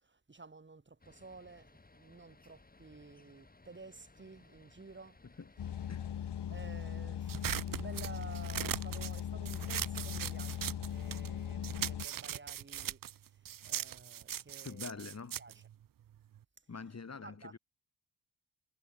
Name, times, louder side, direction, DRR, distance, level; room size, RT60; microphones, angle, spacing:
voice 1, 0.0-5.2 6.5-13.0 13.6-14.9 15.4-15.6 17.2-17.5, right 3 dB, 25° right, 6.1 m, -52 dB
sound 1, 1.0-6.1, left 2 dB, 20° left, 7.1 m, -62 dB
sound 2, 5.6-12.1, left 9 dB, 60° left, 1.4 m, -39 dB
sound 3, 7.3-11.3 11.6-16.4, right 11 dB, 50° right, 0.5 m, -40 dB
voice 2, 14.6-15.4 16.7-17.6, left 5 dB, 35° left, 4.7 m, -45 dB
wide cardioid pair, 155°, 45 cm